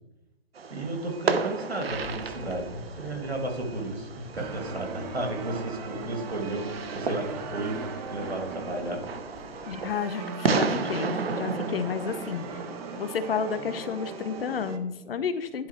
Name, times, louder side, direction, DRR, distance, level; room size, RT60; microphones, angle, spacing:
Fireworks, 0.5-14.8, right 4 dB, 75° right, 0.9 m, -34 dB
voice 1, 0.7-9.0, right 2 dB, 90° right, 2 dB, 2.1 m, -33 dB
sound 1, 1.9-9.9, left 5 dB, 40° left, 1.2 m, -51 dB
sound 2, 4.4-14.8, right 4 dB, 40° right, 1.3 m, -39 dB
voice 2, 9.7-12.4 13.0-15.7, left 6 dB, 65° left, 11 dB, 0.9 m, -31 dB
10.5 x 4.1 x 4.3 m, 0.99 s
figure-of-eight pair, 110°, 31 cm